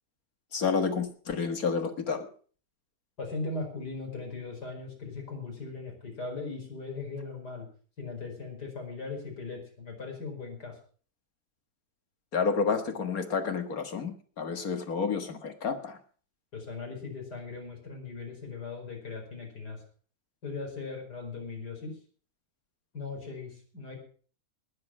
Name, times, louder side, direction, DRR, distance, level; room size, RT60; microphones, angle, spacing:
voice 1, 0.5-2.3 12.3-16.0, left 5 dB, 60° left, 7 dB, 2.1 m, -30 dB
voice 2, 3.2-7.7 8.0-10.7 16.5-19.8 20.4-22.0 22.9-24.0, left 3 dB, 80° left, 1 dB, 5.5 m, -39 dB
19.5 x 7.8 x 5.9 m, 0.43 s
omnidirectional pair, 1.7 m